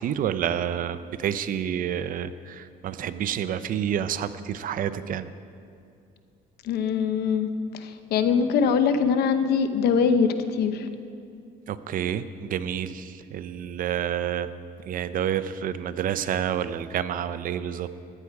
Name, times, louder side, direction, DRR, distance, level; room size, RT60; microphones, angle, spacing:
voice 1, 0.0-5.3 11.7-14.5 14.9-17.9, right 9 dB, 55° right, 13 dB, 0.6 m, -29 dB
voice 2, 6.6-7.5 7.7-10.9, left 6 dB, 75° left, 9 dB, 0.9 m, -23 dB
14.5 x 9.9 x 4.7 m, 2.4 s
cardioid pair, 110°, 17 cm